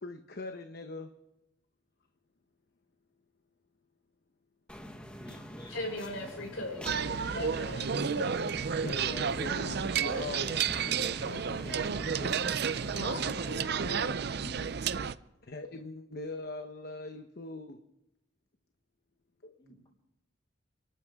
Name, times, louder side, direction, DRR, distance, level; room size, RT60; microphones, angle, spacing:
voice 1, 0.0-1.1 8.8-12.3 14.4-15.1 15.4-17.8 19.4-19.6, left 2 dB, 50° left, 6 dB, 1.0 m, -42 dB
sound 1, 4.7-13.5, equal, 5° left, 1.2 m, -45 dB
voice 2, 5.2-6.0 19.6-19.9, left 1 dB, 25° left, -1 dB, 5.7 m, -56 dB
voice 3, 5.7-6.9 7.2-8.5 12.9-14.1, left 1 dB, 80° left, 0 dB, 5.9 m, -39 dB
sound 2, 6.8-15.1, right 6 dB, 55° right, 0.5 m, -31 dB
30.0 x 13.0 x 3.6 m, 0.93 s
head